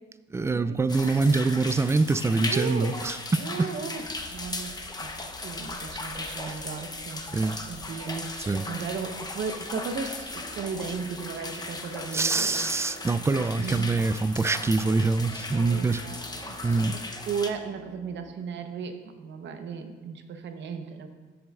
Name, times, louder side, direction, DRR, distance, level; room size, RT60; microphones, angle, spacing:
voice 1, 0.3-3.7 6.5-6.6 7.3-7.6 8.5-8.7 12.1-16.0 16.6-17.0, right 3 dB, 15° right, 14 dB, 0.3 m, -25 dB
sound 1, 0.9-17.5, left 2 dB, 20° left, 0.9 m, -37 dB
voice 2, 2.5-3.0 3.4-5.1 5.4-12.6 13.6-13.9 15.5-16.9 17.3-21.1, right 5 dB, 65° right, 7 dB, 0.9 m, -36 dB
sound 2, 4.0-11.0, left 2 dB, 60° left, 1.0 m, -52 dB
sound 3, 10.3-18.3, right 3 dB, 45° right, 2.7 m, -50 dB
13.5 x 7.4 x 2.4 m, 1.3 s
cardioid pair, 90°, 20 cm